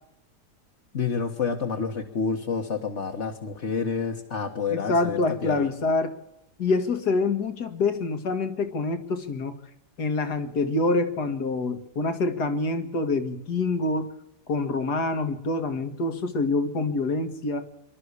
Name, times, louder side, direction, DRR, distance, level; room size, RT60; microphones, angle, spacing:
voice 1, 0.9-5.7, left 5 dB, 45° left, 2 dB, 1.7 m, -29 dB
voice 2, 4.7-6.1 6.6-9.5 10.0-14.1 14.5-17.6, left 3 dB, 70° left, 9 dB, 2.3 m, -26 dB
24.5 x 12.5 x 8.3 m, 0.84 s
omnidirectional pair, 1.8 m